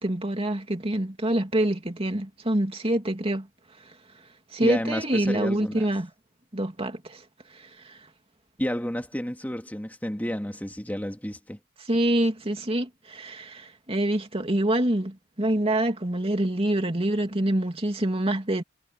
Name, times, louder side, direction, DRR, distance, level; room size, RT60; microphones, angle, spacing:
voice 1, 0.0-3.5 4.5-6.1 6.5-7.2 7.5-8.0 11.9-18.6, right 1 dB, 30° right, 2.8 m, -26 dB
voice 2, 4.6-5.9 8.6-11.6, equal, 10° left, 2.6 m, -31 dB
head